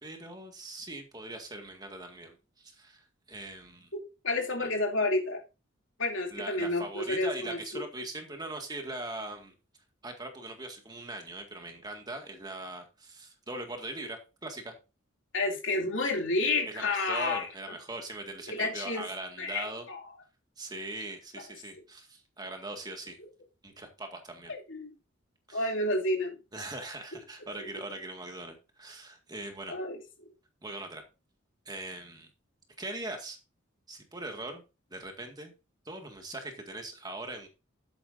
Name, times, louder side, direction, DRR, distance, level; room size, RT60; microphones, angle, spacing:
voice 1, 0.0-3.9 4.6-4.7 6.3-9.5 10.0-14.7 16.6-19.9 20.6-23.2 23.6-24.5 25.5-25.7 26.5-29.7 30.6-31.0 31.7-32.3 32.8-33.4 33.9-34.6 34.9-35.5 35.9-37.5, right 2 dB, 20° right, 1.9 m, -41 dB
voice 2, 4.2-5.4 6.0-7.8 15.3-17.5 18.5-19.1 19.4-20.0 24.5-24.9 25.5-26.3 29.7-30.0, left 2 dB, 70° left, 2.8 m, -30 dB
12.0 x 8.4 x 2.6 m
head